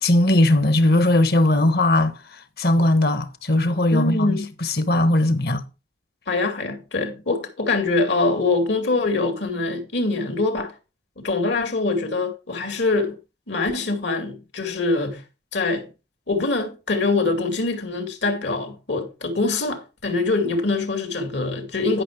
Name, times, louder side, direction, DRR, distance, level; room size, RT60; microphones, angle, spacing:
voice 1, 0.0-5.6, left 1 dB, 60° left, 1.1 m, -19 dB
voice 2, 3.9-4.5 6.3-10.7 11.2-13.1 13.5-15.2 15.5-15.9 16.3-22.0, left 3 dB, 80° left, 2.2 m, -24 dB
11.0 x 5.8 x 4.7 m
head